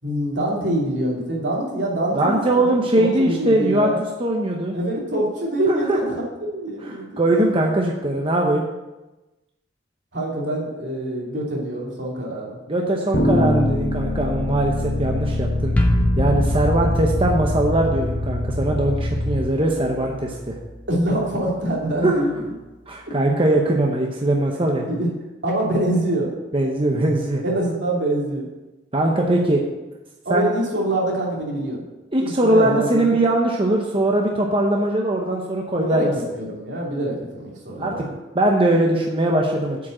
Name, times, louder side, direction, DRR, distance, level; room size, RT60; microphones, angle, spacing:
voice 1, 0.0-2.6 3.0-4.0 4.7-6.1 6.5-7.5 10.1-12.6 20.9-22.5 24.9-25.1 25.4-26.3 27.4-28.5 30.2-31.8 32.2-33.1 35.8-38.0, right 1 dB, 70° right, -4 dB, 2.9 m, -25 dB
voice 2, 2.1-3.9 4.2-4.7 5.7-6.0 7.2-8.6 12.7-15.7 16.2-20.5 22.0-22.2 22.9-24.9 26.5-27.4 28.9-29.6 30.3-30.5 32.1-36.1 37.8-39.8, right 1 dB, 30° right, 0 dB, 0.9 m, -21 dB
sound 1, 13.1-19.4, left 1 dB, 65° left, 2.3 m, -23 dB
sound 2, 15.8-21.5, equal, 10° left, 0.8 m, -27 dB
8.1 x 5.2 x 7.4 m, 1.1 s
head